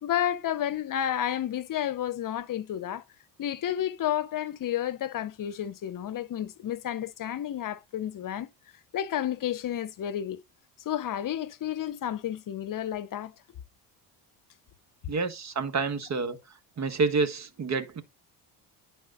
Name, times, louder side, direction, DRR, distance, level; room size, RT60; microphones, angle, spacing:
voice 1, 0.0-3.0 3.4-8.5 8.9-10.4 10.8-13.3, left 11 dB, 50° left, 0.9 m, -31 dB
voice 2, 15.1-16.4 16.8-18.0, right 4 dB, 40° right, 1.6 m, -28 dB
11.0 x 4.3 x 3.9 m
cardioid pair, 100°, 42 cm